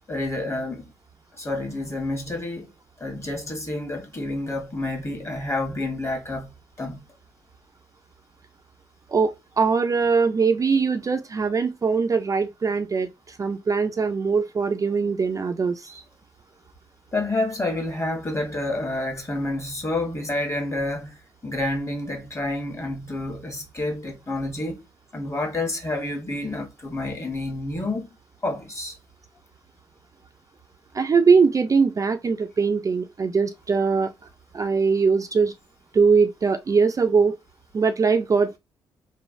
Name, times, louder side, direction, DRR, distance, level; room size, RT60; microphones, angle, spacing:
voice 1, 0.1-0.8 1.4-2.7 3.0-7.0 15.9-16.0 17.1-21.2 21.4-24.8 25.1-28.1 28.4-28.9, left 2 dB, 30° left, 1.3 m, -29 dB
voice 2, 9.1-15.9 30.9-34.1 34.5-35.5 35.9-37.3 37.7-38.6, right 5 dB, 35° right, 0.4 m, -21 dB
3.1 x 2.2 x 2.5 m
supercardioid pair, 50°, 10 cm